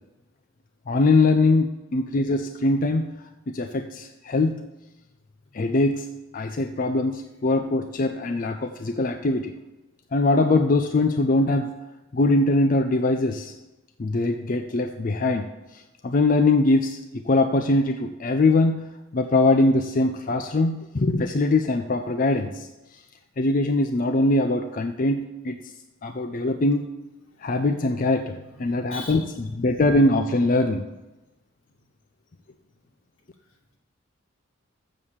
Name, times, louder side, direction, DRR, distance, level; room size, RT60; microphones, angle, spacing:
voice 1, 0.9-3.2 3.5-4.7 5.5-6.1 6.3-9.5 10.1-11.7 12.1-13.5 14.0-15.5 15.7-22.7 23.4-25.6 26.0-26.9 27.4-30.9, left 2 dB, 40° left, 7 dB, 0.4 m, -22 dB
voice 2, 28.3-29.3, left 2 dB, 80° left, -1 dB, 2.3 m, -41 dB
7.3 x 7.2 x 6.4 m, 1.0 s
head